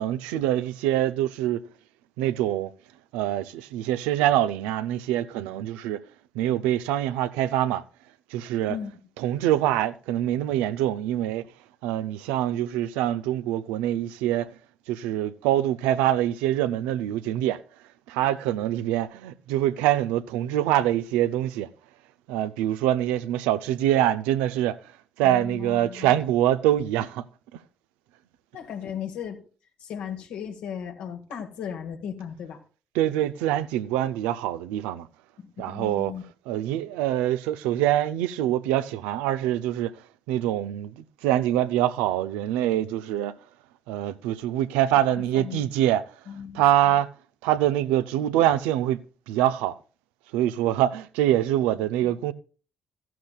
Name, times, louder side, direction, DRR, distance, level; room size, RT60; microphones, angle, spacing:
voice 1, 0.0-1.6 2.2-2.7 3.1-6.1 6.3-7.8 8.3-8.8 9.2-11.4 11.8-14.5 14.9-17.6 18.1-21.7 22.3-24.8 25.2-27.2 32.9-35.1 35.6-36.1 36.5-39.9 40.3-43.4 43.9-46.0 46.5-47.1 47.4-49.0 49.3-49.8 50.3-52.3, right 12 dB, 85° right, 0.5 m, -24 dB
voice 2, 25.2-26.2 28.5-29.4 29.8-32.6 35.6-36.2 45.1-45.7 46.3-47.0 51.8-52.1, left 8 dB, 75° left, 1.6 m, -36 dB
14.5 x 12.0 x 2.4 m
hypercardioid pair, 50°, 2 cm